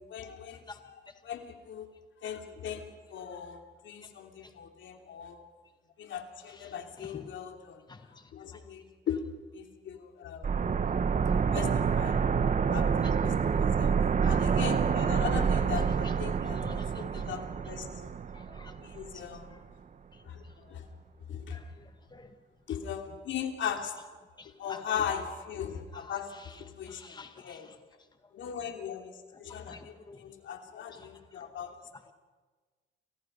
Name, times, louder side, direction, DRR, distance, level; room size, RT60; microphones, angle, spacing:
voice 1, 0.0-0.9 1.2-1.9 2.2-5.4 6.0-7.8 8.1-9.2 9.5-10.7 11.5-12.2 12.7-13.9 14.2-17.9 18.8-19.6 20.2-20.4 20.7-20.8 21.3-21.6 22.7-23.9 24.6-26.3 26.6-27.7 28.3-31.7, left 8 dB, 70° left, 3.1 m, -39 dB
voice 2, 6.5-7.3 7.9-8.6 9.1-9.2 11.3-12.0 13.0-13.6 14.2-14.3 15.7-16.2 16.4-17.3 18.3-19.6 20.1-20.5 21.5-22.4 22.7-22.9 23.3-23.4 24.0-24.1 24.4-25.0 26.0-27.8 28.6-28.7 29.3-30.2 30.9-31.5 31.8-32.1, left 4 dB, 20° left, 1.5 m, -52 dB
sound 1, 10.4-19.2 19.4-19.5, right 6 dB, 40° right, 1.1 m, -27 dB
30.0 x 26.5 x 5.4 m
cardioid pair, 90°, 20 cm